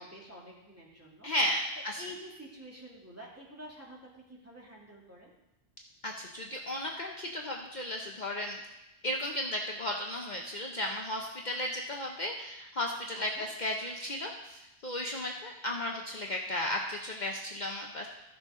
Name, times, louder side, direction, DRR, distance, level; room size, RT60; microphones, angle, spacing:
voice 1, 0.0-1.3 1.9-4.0 4.3-5.3 13.1-13.5, equal, 15° right, -4 dB, 2.3 m, -48 dB
voice 2, 1.2-2.0 6.0-8.6 9.0-18.1, left 1 dB, 45° left, 0 dB, 0.9 m, -34 dB
14.0 x 6.5 x 3.7 m, 0.95 s
omnidirectional pair, 1.1 m